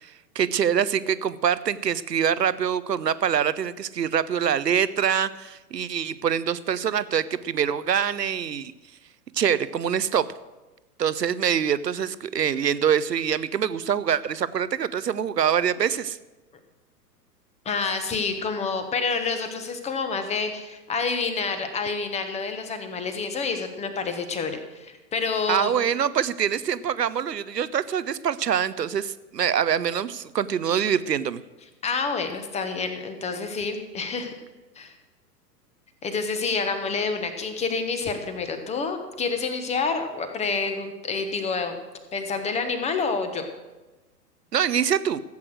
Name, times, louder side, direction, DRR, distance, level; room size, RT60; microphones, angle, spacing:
voice 1, 0.0-8.7 9.3-10.3 11.0-16.2 25.5-31.4 44.5-45.2, right 8 dB, 80° right, 16 dB, 0.8 m, -24 dB
voice 2, 17.6-25.7 31.8-34.3 34.8-34.9 36.0-41.8 42.1-43.5, left 4 dB, 15° left, 8 dB, 1.2 m, -28 dB
15.5 x 8.4 x 6.4 m, 1.1 s
figure-of-eight pair, 105°, 49 cm